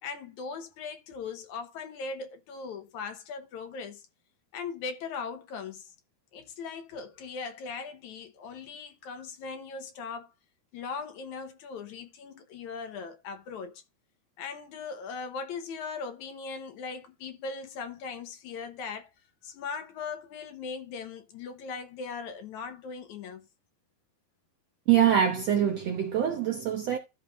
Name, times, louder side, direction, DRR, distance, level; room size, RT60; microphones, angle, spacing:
voice 1, 0.0-4.0 4.5-5.9 6.3-10.3 10.7-13.8 14.4-19.1 19.4-23.5, left 5 dB, 65° left, 2.1 m, -39 dB
voice 2, 24.9-27.0, right 10 dB, 75° right, 1.5 m, -24 dB
14.0 x 6.0 x 2.5 m
omnidirectional pair, 4.3 m